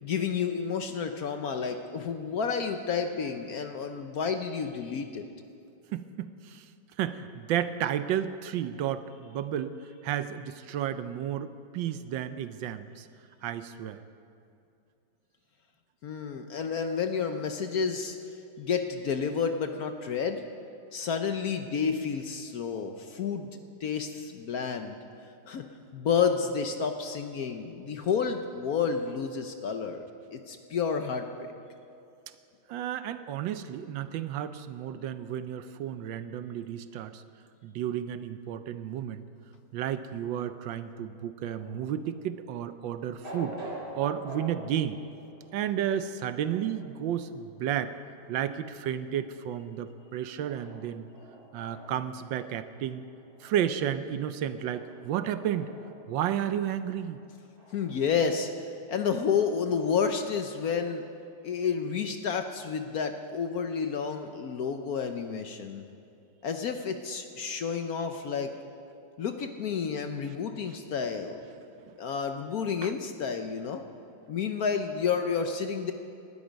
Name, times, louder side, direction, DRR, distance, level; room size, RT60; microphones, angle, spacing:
voice 1, 0.0-5.2 16.0-18.2 18.6-20.4 20.9-23.5 23.8-25.0 25.5-25.6 25.9-30.0 30.3-31.5 57.7-58.5 58.9-61.0 61.4-65.8 66.4-68.5 69.2-71.4 72.0-73.8 74.3-75.9, left 6 dB, 60° left, 6 dB, 1.1 m, -30 dB
voice 2, 5.9-6.7 7.0-9.7 10.0-13.1 13.4-14.0 32.7-37.2 37.6-39.2 39.7-43.6 44.0-45.0 45.5-47.9 48.3-51.1 51.5-53.1 53.4-55.7 56.1-57.2 71.9-72.0 72.8-72.9, right 10 dB, 75° right, 12 dB, 1.3 m, -32 dB
sound 1, 41.5-58.0, right 1 dB, 30° right, 3.3 m, -48 dB
18.5 x 12.5 x 5.2 m, 2.6 s
omnidirectional pair, 2.1 m